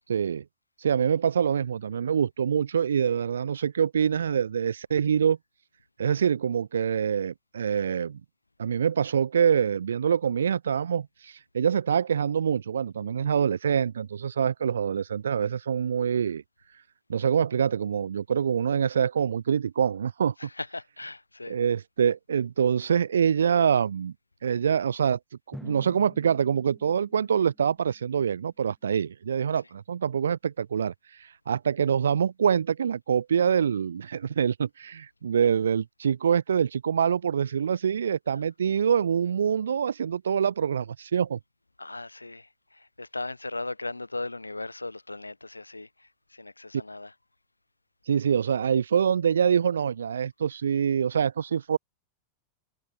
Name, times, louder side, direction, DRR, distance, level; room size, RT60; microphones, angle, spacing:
voice 1, 0.1-0.4 0.8-5.4 6.0-8.2 8.6-16.4 17.1-20.3 21.5-24.1 24.4-25.2 25.5-30.9 31.2-41.4 48.1-51.8, right 7 dB, 70° right, 0.7 m, -25 dB
voice 2, 20.4-21.6 38.3-38.4 41.8-47.1, left 2 dB, 85° left, 3.2 m, -38 dB
Drum, 25.5-28.2, equal, ahead, 2.8 m, -48 dB
figure-of-eight pair, 90°, 0 cm